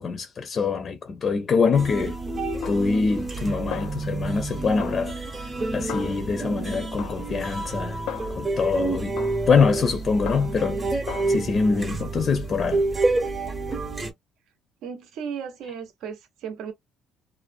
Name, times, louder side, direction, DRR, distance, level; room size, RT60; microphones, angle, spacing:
voice 1, 0.0-2.2 2.7-5.2 5.7-8.0 8.3-9.2 9.5-10.8 11.3-12.8, left 5 dB, 40° left, 0.5 m, -24 dB
sound 1, 1.7-14.1, right 2 dB, 25° right, 0.7 m, -29 dB
Snare drum, 2.6-3.4 3.7-4.5 4.8-6.6 7.0-8.7 9.2-10.8 11.1-11.3, left 9 dB, 80° left, 0.6 m, -39 dB
voice 2, 14.8-16.7, right 7 dB, 75° right, 0.7 m, -35 dB
2.5 x 2.1 x 2.4 m
cardioid pair, 110°, 0 cm